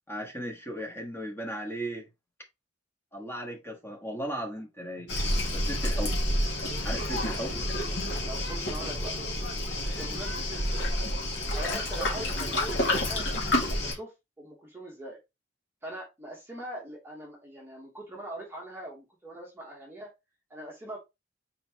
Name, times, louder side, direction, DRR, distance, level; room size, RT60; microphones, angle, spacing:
voice 1, 0.1-2.1 3.1-5.1 5.5-6.2 6.8-7.6, equal, 10° left, 1.5 m, -36 dB
Waves surf, 5.1-13.9, left 1 dB, 65° left, 2.0 m, -29 dB
voice 2, 8.2-9.1 9.9-10.9 11.5-15.2 15.8-20.1 20.5-21.0, right 1 dB, 10° right, 1.1 m, -42 dB
4.3 x 4.3 x 2.8 m
head